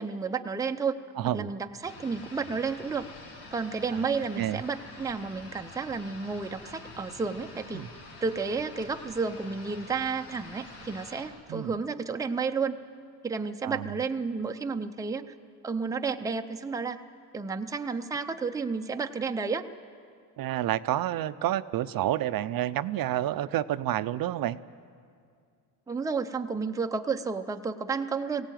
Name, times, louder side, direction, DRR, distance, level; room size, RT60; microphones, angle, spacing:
voice 1, 0.0-1.0 1.3-3.1 3.5-7.9 8.2-12.8 13.2-15.3 15.6-17.0 17.3-19.7 25.9-28.5, right 5 dB, 10° right, 6 dB, 0.5 m, -31 dB
voice 2, 1.2-1.5 3.9-4.1 4.4-4.6 7.7-7.9 11.5-11.8 13.6-14.0 20.4-24.6, right 13 dB, 60° right, 13 dB, 0.5 m, -29 dB
sound 1, 1.8-11.3, left 2 dB, 90° left, 4.6 m, -47 dB
21.0 x 17.0 x 9.1 m, 2.2 s
cardioid pair, 165°, 39 cm